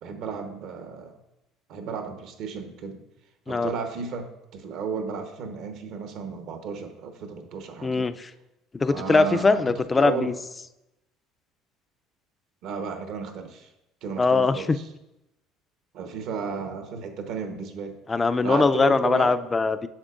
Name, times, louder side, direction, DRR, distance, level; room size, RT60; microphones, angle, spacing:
voice 1, 0.0-1.2 1.7-3.0 3.5-8.1 8.9-9.6 10.0-10.3 12.6-13.7 14.0-14.8 15.9-18.0 18.4-19.3, right 5 dB, 65° right, 7 dB, 1.0 m, -33 dB
voice 2, 7.8-8.3 8.7-10.3 14.2-14.8 18.1-19.9, left 4 dB, 20° left, 11 dB, 0.4 m, -21 dB
8.8 x 6.6 x 2.5 m, 0.91 s
supercardioid pair, 95°, 0 cm